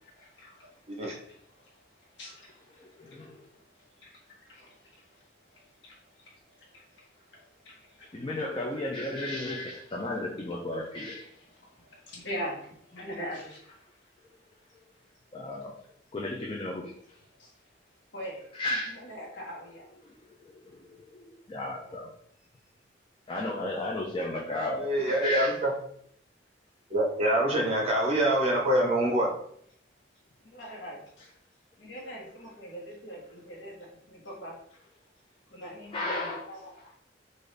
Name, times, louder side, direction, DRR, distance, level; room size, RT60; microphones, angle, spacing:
voice 1, 0.1-8.3 11.3-13.6 17.4-17.7 18.1-19.9 21.8-22.0 30.4-31.3 31.8-34.6 35.5-36.9, equal, 80° left, -2 dB, 1.3 m, -44 dB
voice 2, 2.8-3.4 8.1-11.2 15.3-15.7 16.1-17.2 18.5-18.9 20.0-22.1 23.3-25.6 35.9-36.4, left 1 dB, 25° left, -2 dB, 0.4 m, -34 dB
voice 3, 24.8-25.7 26.9-29.3, right 1 dB, 35° right, -2 dB, 1.0 m, -25 dB
3.9 x 2.6 x 3.2 m, 0.68 s
head